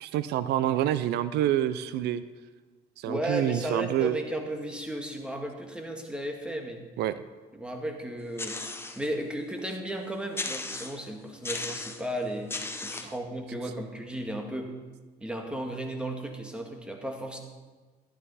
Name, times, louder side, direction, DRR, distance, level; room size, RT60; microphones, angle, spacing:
voice 1, 0.0-2.2 3.0-4.2 7.0-7.1 13.0-13.1, right 12 dB, 80° right, 14 dB, 0.5 m, -27 dB
voice 2, 3.0-6.9 7.5-8.6 9.0-12.5 12.8-14.7 15.2-17.4, right 1 dB, 5° right, 3 dB, 1.7 m, -34 dB
sound 1, 8.4-9.1 9.6-9.7 10.3-11.1 11.4-12.1 12.5-13.2, left 3 dB, 15° left, 0.9 m, -36 dB
12.5 x 11.5 x 4.2 m, 1.3 s
cardioid pair, 110°, 17 cm